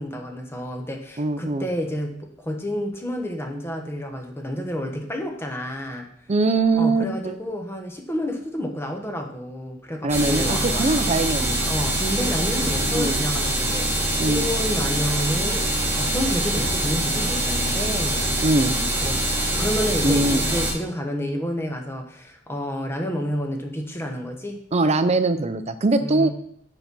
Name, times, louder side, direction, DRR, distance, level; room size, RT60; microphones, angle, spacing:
voice 1, 0.0-6.1 6.7-11.1 11.7-24.6 26.0-26.3, equal, 15° left, 2 dB, 1.1 m, -30 dB
voice 2, 1.2-1.7 6.3-7.3 10.0-11.7 12.9-13.2 14.2-14.4 18.4-18.8 20.0-20.4 24.7-26.3, right 2 dB, 35° right, 10 dB, 0.6 m, -22 dB
sound 1, 10.1-20.7, right 1 dB, 15° right, 2.5 m, -24 dB
6.8 x 5.4 x 6.1 m, 0.66 s
head